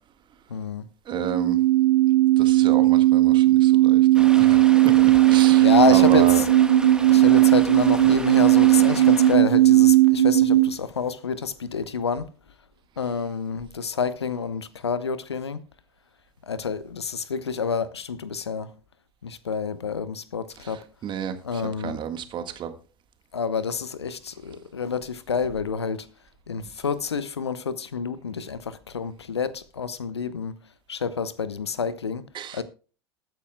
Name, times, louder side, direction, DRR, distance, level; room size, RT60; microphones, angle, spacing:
voice 1, 0.5-0.9 4.4-4.7 5.6-6.5 7.1-12.3 13.0-15.6 16.4-18.7 19.2-20.8 21.4-22.0 23.3-26.1 26.5-30.6 30.9-32.3 32.5-32.6, left 6 dB, 85° left, 0.8 m, -28 dB
voice 2, 1.1-1.6 2.4-4.6 5.3-6.4 21.0-21.4 21.8-22.7 32.3-32.6, right 8 dB, 35° right, 1.6 m, -31 dB
sound 1, 1.1-10.7, right 15 dB, 75° right, 0.9 m, -17 dB
Stream, 4.1-9.4, right 2 dB, 5° right, 1.3 m, -35 dB
20.0 x 9.2 x 2.2 m
figure-of-eight pair, 80°, 14 cm